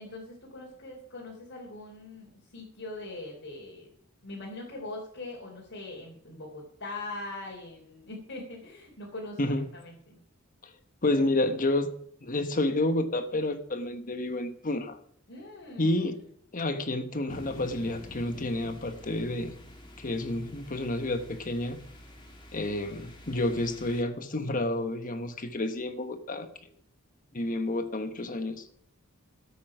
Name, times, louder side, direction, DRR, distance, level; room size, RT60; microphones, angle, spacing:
voice 1, 0.0-3.9 4.2-10.2 15.3-16.0, left 2 dB, 65° left, -4 dB, 3.3 m, -42 dB
voice 2, 9.4-9.7 10.6-10.7 11.0-11.9 12.2-15.0 15.8-16.2 16.5-19.5 20.0-21.8 22.5-26.5 27.3-28.7, left 1 dB, 40° left, 9 dB, 1.1 m, -30 dB
sound 1, 17.3-24.0, left 1 dB, 25° left, 2.3 m, -48 dB
13.5 x 8.5 x 5.9 m, 0.65 s
head